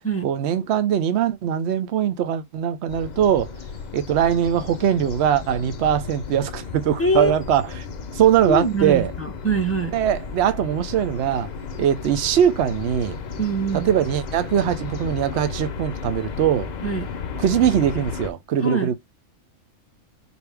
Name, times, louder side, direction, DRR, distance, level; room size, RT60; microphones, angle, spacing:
voice 1, 0.2-3.5 3.9-7.7 8.1-9.1 9.9-11.5 11.8-13.2 13.8-16.7 17.4-18.9, right 9 dB, 60° right, 0.8 m, -21 dB
sound 1, 2.9-18.3, left 5 dB, 60° left, 0.4 m, -34 dB
voice 2, 7.0-7.3 8.5-9.9 13.4-13.9 16.8-17.1 18.6-18.9, right 2 dB, 15° left, 0.7 m, -24 dB
4.3 x 2.8 x 3.4 m
omnidirectional pair, 1.5 m